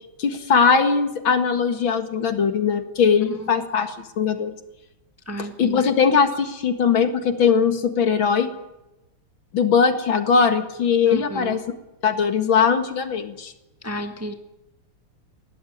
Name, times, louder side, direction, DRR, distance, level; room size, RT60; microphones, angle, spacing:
voice 1, 0.2-4.5 5.6-8.5 9.5-11.6 12.0-13.5, left 6 dB, 70° left, 8 dB, 2.6 m, -20 dB
voice 2, 5.3-5.9 11.1-11.6 13.8-14.3, equal, 10° right, 7 dB, 1.2 m, -32 dB
21.0 x 17.5 x 9.3 m, 0.96 s
omnidirectional pair, 2.3 m